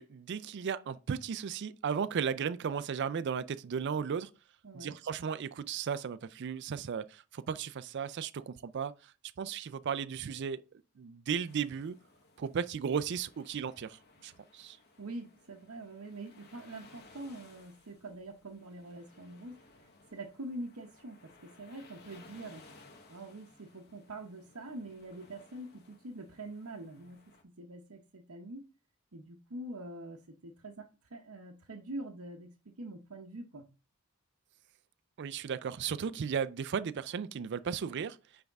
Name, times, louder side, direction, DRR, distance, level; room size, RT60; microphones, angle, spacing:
voice 1, 0.0-4.3 4.7-9.1 9.4-10.6 11.0-12.0 12.4-14.8 35.2-38.2, right 7 dB, 50° right, 0.4 m, -35 dB
voice 2, 4.6-4.9 15.0-19.6 19.8-22.7 23.1-27.2 27.6-28.6 29.1-32.5 32.8-33.7, right 2 dB, 75° right, 0.8 m, -45 dB
sound 1, 11.5-27.4, left 3 dB, 45° left, 1.1 m, -60 dB
9.2 x 3.5 x 3.5 m
head